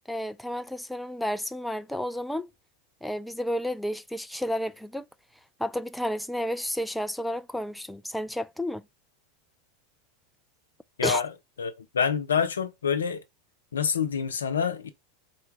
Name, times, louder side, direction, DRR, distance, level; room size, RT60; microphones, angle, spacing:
voice 1, 0.1-2.5 3.0-5.1 5.6-8.8 11.0-11.2, equal, 5° left, 0.4 m, -31 dB
voice 2, 11.0-11.3 11.6-13.2 13.7-14.9, left 7 dB, 85° left, 0.7 m, -27 dB
4.3 x 2.3 x 4.7 m
hypercardioid pair, 90°, 0 cm